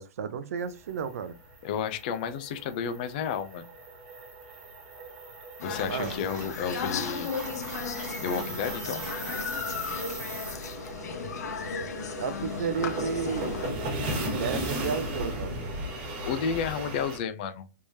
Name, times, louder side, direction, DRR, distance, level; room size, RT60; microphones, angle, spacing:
voice 1, 0.0-1.4 5.9-6.1 12.2-13.6 14.3-15.6, right 6 dB, 60° right, 0.5 m, -32 dB
sound 1, 0.7-17.2, right 1 dB, 35° right, 1.4 m, -37 dB
voice 2, 1.6-3.7 5.6-7.4 8.2-9.1 16.2-17.7, left 7 dB, 30° left, 0.4 m, -31 dB
sound 2, 5.6-13.7, left 6 dB, 80° left, 0.6 m, -36 dB
Dog, 5.6-10.6, equal, 10° right, 1.4 m, -44 dB
3.5 x 3.1 x 2.7 m
supercardioid pair, 175°, 9 cm